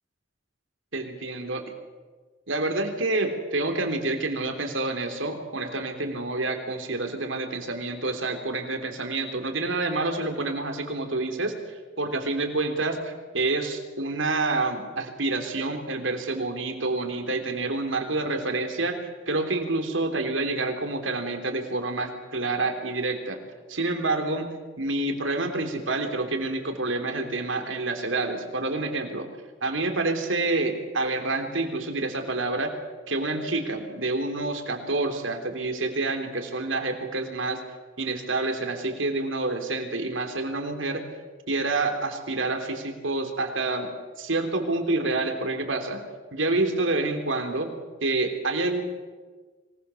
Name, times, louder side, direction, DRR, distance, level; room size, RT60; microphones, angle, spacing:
voice 1, 0.9-1.6 2.5-23.4 23.7-29.3 29.6-32.8 33.1-37.6 38.0-41.0 41.5-43.9 44.2-46.0 46.3-47.7 48.0-48.8, right 2 dB, 85° right, 5 dB, 3.3 m, -28 dB
25.0 x 19.0 x 7.1 m, 1.4 s
head